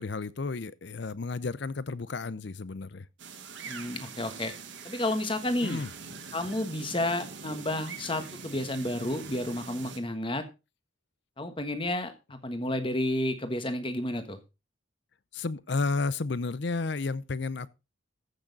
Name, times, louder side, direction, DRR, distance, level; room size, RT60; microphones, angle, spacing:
voice 1, 0.0-3.1 5.6-5.9 15.3-17.7, left 3 dB, 55° left, 0.6 m, -32 dB
sound 1, 3.2-10.0, right 5 dB, 60° right, 1.6 m, -43 dB
voice 2, 3.6-4.5 4.8-5.8 6.3-10.4 11.4-14.4, left 1 dB, 25° left, 1.3 m, -31 dB
14.5 x 6.4 x 4.0 m
head